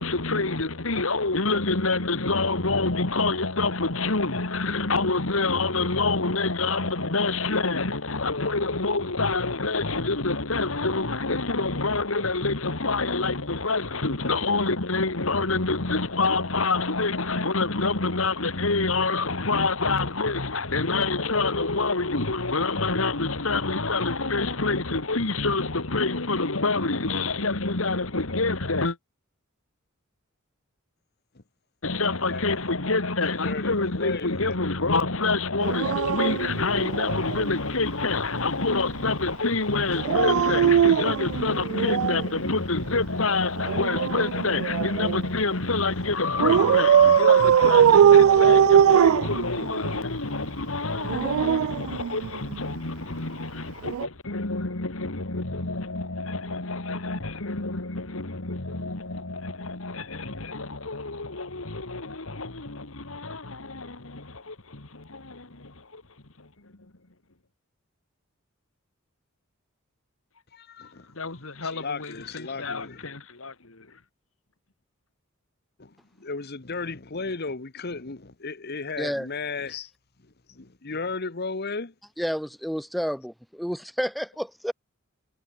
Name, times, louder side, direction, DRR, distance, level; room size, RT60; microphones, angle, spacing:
voice 1, 0.0-29.0 31.8-66.0 66.4-66.5 71.2-73.9, left 3 dB, 75° left, 2.2 m, -27 dB
voice 2, 32.2-32.6 33.2-34.5 70.5-71.0 71.6-73.0 75.8-79.9 80.5-81.9, left 4 dB, 50° left, 1.4 m, -35 dB
Dog, 35.6-37.5 39.9-42.3 43.6-45.3 46.4-50.0 50.9-52.6 53.8-54.1, right 9 dB, 80° right, 0.3 m, -20 dB
voice 3, 79.0-79.3 82.2-84.7, equal, ahead, 1.4 m, -30 dB
head